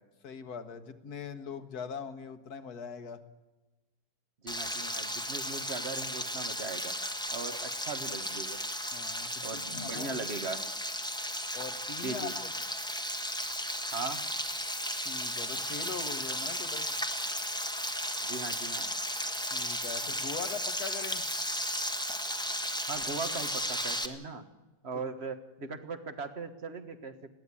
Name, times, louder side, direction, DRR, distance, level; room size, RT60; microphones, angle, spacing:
voice 1, 0.2-3.2 8.9-10.3 11.5-12.5 15.1-16.9 19.5-21.3 25.6-25.8, left 6 dB, 60° left, 10 dB, 1.8 m, -41 dB
voice 2, 4.4-6.9 7.3-8.6 9.4-10.6 12.0-12.3 13.9-14.2 18.2-18.9 22.9-24.5 24.8-27.3, right 4 dB, 40° right, 10 dB, 1.6 m, -39 dB
Frying (food), 4.5-24.1, equal, 5° left, 1.2 m, -35 dB
21.0 x 15.5 x 9.8 m, 1.1 s
omnidirectional pair, 1.9 m